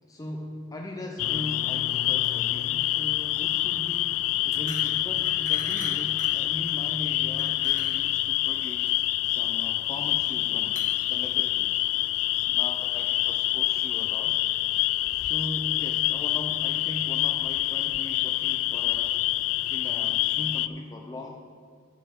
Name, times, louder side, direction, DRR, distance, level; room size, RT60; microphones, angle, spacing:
voice 1, 0.1-9.0 9.2-11.9 12.5-14.4 15.1-19.2 19.7-21.4, left 1 dB, 15° left, 1 dB, 0.5 m, -39 dB
sound 1, 1.2-20.7, left 15 dB, 80° left, 0.3 m, -26 dB
sound 2, 2.1-12.1, right 2 dB, 40° right, 1.6 m, -47 dB
9.9 x 5.2 x 7.7 m, 2.1 s
head